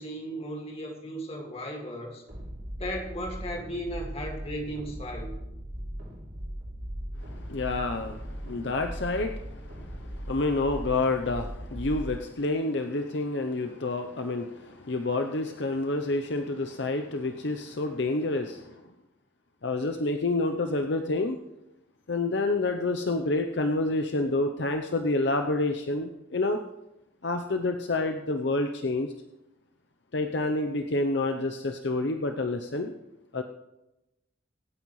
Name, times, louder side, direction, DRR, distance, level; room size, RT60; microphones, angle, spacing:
voice 1, 0.0-2.2 2.8-5.3, equal, 30° left, 1 dB, 2.1 m, -36 dB
sound 1, 2.3-12.2, equal, 60° right, 3.4 m, -39 dB
voice 2, 7.2-18.8 19.6-21.4 22.1-26.6 27.2-29.1 30.1-32.9 33.3-33.4, left 2 dB, 60° left, 6 dB, 0.7 m, -28 dB
24.0 x 9.2 x 3.2 m, 0.95 s
head